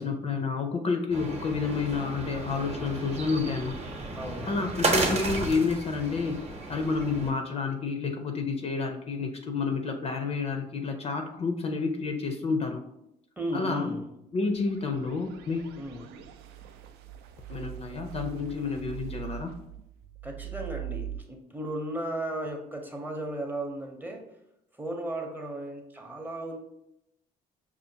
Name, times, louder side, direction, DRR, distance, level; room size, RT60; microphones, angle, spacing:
voice 1, 0.0-3.8 4.5-6.4 6.7-12.8 13.5-13.9 14.3-15.8 17.5-19.5, left 4 dB, 35° left, 5 dB, 0.4 m, -29 dB
sound 1, 1.1-7.3, right 2 dB, 40° right, 0.8 m, -33 dB
voice 2, 4.1-4.9 13.4-14.1 15.8-16.1 20.2-24.3 24.7-26.6, right 1 dB, 10° right, 2 dB, 0.6 m, -35 dB
sound 2, 14.3-21.2, right 11 dB, 75° right, 0.4 m, -42 dB
5.5 x 2.4 x 2.7 m, 0.80 s
cardioid pair, 110°, 17 cm